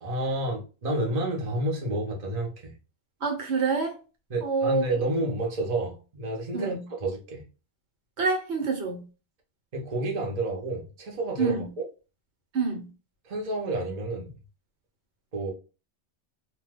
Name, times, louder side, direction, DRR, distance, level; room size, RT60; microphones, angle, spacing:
voice 1, 0.0-2.8 4.3-7.4 9.7-11.9 13.2-14.3 15.3-15.5, right 1 dB, 35° right, 0.8 m, -30 dB
voice 2, 3.2-3.9 4.4-4.8 6.5-6.8 8.2-9.0 11.4-11.7 12.5-12.8, right 4 dB, 70° right, 1.1 m, -26 dB
2.8 x 2.2 x 3.3 m
omnidirectional pair, 1.2 m